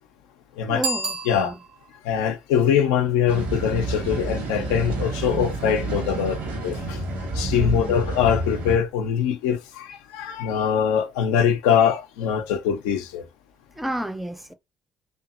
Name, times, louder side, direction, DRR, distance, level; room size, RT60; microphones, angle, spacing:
voice 1, 0.7-1.6 7.5-8.1 13.8-14.5, equal, 5° right, 0.5 m, -31 dB
Bicycle bell, 0.7-2.0, right 3 dB, 85° right, 0.6 m, -30 dB
voice 2, 2.0-7.0 7.3-13.3, left 8 dB, 75° left, 0.4 m, -23 dB
sound 1, 3.3-8.8, right 2 dB, 70° right, 1.0 m, -29 dB
2.7 x 2.4 x 2.4 m
hypercardioid pair, 45°, 3 cm